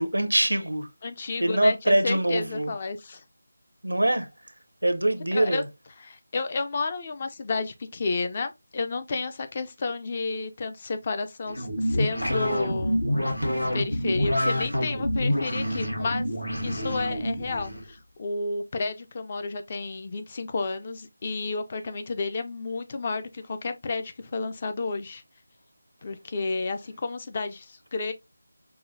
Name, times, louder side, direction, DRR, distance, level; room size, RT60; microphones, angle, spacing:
voice 1, 0.0-0.9 1.4-2.7 3.8-4.3 4.8-5.6, right 1 dB, 80° right, 0.6 m, -23 dB
voice 2, 1.0-3.2 5.3-5.6 6.0-13.0 13.7-16.3 16.6-25.2 26.0-28.1, left 3 dB, 30° left, 0.4 m, -31 dB
sound 1, 11.5-17.8, equal, 85° left, 1.2 m, -27 dB
4.7 x 2.2 x 2.4 m
figure-of-eight pair, 160°, 0 cm